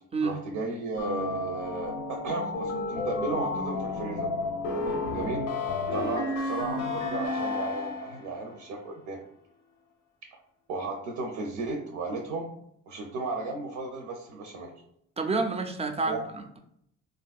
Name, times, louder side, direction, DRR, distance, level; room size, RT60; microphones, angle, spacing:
voice 1, 0.2-4.3 5.1-5.4 5.9-9.2 10.7-12.5 12.9-14.7 16.1-16.2, right 3 dB, 80° right, 1 dB, 0.6 m, -34 dB
sound 1, 1.0-8.3, left 3 dB, 85° left, 0.6 m, -31 dB
voice 2, 15.2-16.6, right 3 dB, 20° right, 5 dB, 0.4 m, -29 dB
3.5 x 2.5 x 2.3 m, 0.72 s
cardioid pair, 90°, 30 cm